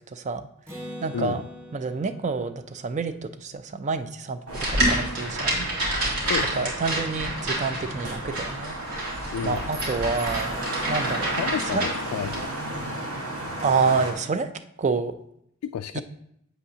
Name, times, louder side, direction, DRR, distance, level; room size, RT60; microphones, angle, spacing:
voice 1, 0.1-0.4 1.0-1.4 1.7-4.4 4.7-5.7 6.6-9.0 9.4-10.6 10.9-11.9 13.6-14.5 14.8-15.1 15.9-16.0, right 4 dB, 30° right, 11 dB, 0.4 m, -28 dB
Acoustic guitar, 0.7-4.3, equal, 10° right, 2.0 m, -43 dB
sound 1, 4.5-14.1, right 1 dB, 70° right, 1.9 m, -34 dB
sound 2, 4.5-12.4, right 1 dB, 90° right, 2.7 m, -29 dB
voice 2, 6.3-6.7 9.3-9.7 11.4-12.5 15.6-16.0, left 8 dB, 85° left, 8 dB, 0.3 m, -31 dB
8.2 x 7.9 x 2.8 m, 0.75 s
head